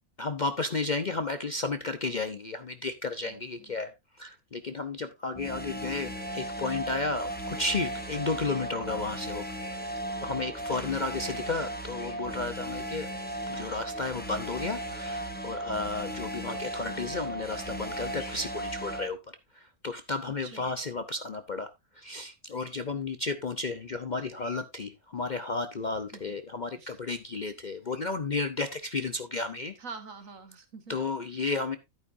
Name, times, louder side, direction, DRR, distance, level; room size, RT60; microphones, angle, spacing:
voice 1, 0.2-3.9 4.2-9.4 10.2-13.1 13.5-19.2 19.5-21.7 22.0-29.8 30.9-31.8, left 3 dB, 45° left, 10 dB, 0.6 m, -33 dB
voice 2, 3.2-3.8 20.2-20.7 26.1-26.4 26.8-27.0 29.8-31.0, right 4 dB, 65° right, 9 dB, 1.9 m, -46 dB
sound 1, 5.3-19.1, right 1 dB, 5° left, 1.2 m, -36 dB
Bird vocalization bird call bird song, 9.5-9.8 11.9-12.2 14.9-15.2 18.1-18.4 20.5-20.7 22.5-22.8 24.3-24.6 27.8-28.1, left 2 dB, 60° left, 3.1 m, -52 dB
11.0 x 9.3 x 2.6 m, 0.22 s
omnidirectional pair, 1.5 m